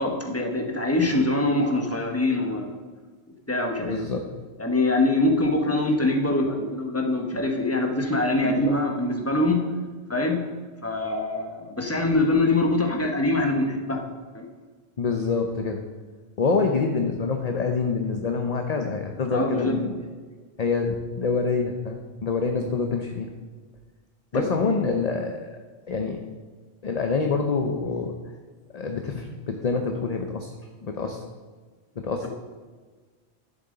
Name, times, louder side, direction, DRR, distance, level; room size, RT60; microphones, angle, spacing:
voice 1, 0.0-2.7 3.5-4.0 4.6-9.6 10.1-10.4 10.8-14.0 14.3-14.5 19.3-19.8 24.3-24.8 32.2-32.3, left 2 dB, 15° left, 2 dB, 1.1 m, -24 dB
voice 2, 3.8-4.2 8.4-8.8 15.0-15.8 16.4-19.9 20.6-23.3 24.3-25.5 25.9-26.2 26.8-28.1 28.7-30.5 30.8-31.2 32.0-32.3, left 4 dB, 40° left, 4 dB, 0.7 m, -26 dB
11.0 x 7.5 x 3.9 m, 1.4 s
omnidirectional pair, 1.1 m